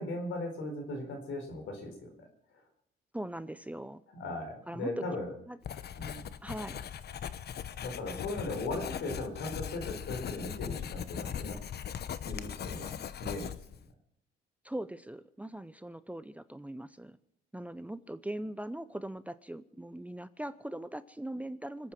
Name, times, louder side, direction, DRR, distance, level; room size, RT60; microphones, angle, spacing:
voice 1, 0.0-2.3 4.1-5.3 6.0-6.2 7.8-11.6 12.2-12.9 13.2-13.6, left 2 dB, 80° left, 5 dB, 4.4 m, -38 dB
voice 2, 3.1-4.0 4.7-5.0 5.5-5.6 6.4-6.8 14.6-17.2 17.5-21.9, right 1 dB, 5° right, 14 dB, 0.6 m, -40 dB
Writing, 5.6-13.8, left 9 dB, 55° left, 0.9 m, -39 dB
25.0 x 8.8 x 6.0 m, 0.70 s
cardioid pair, 90°, 20 cm